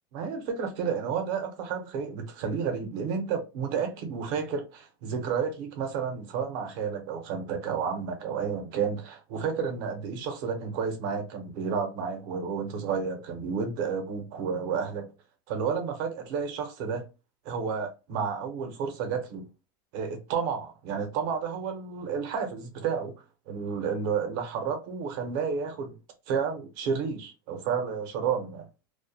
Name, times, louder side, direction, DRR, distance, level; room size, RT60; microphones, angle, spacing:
voice 1, 0.1-15.1 15.5-17.0 17.4-19.5 19.9-23.1 23.5-26.0 26.3-28.7, right 6 dB, 60° right, 0.8 m, -31 dB
2.3 x 2.2 x 2.7 m
supercardioid pair, 135°, 12 cm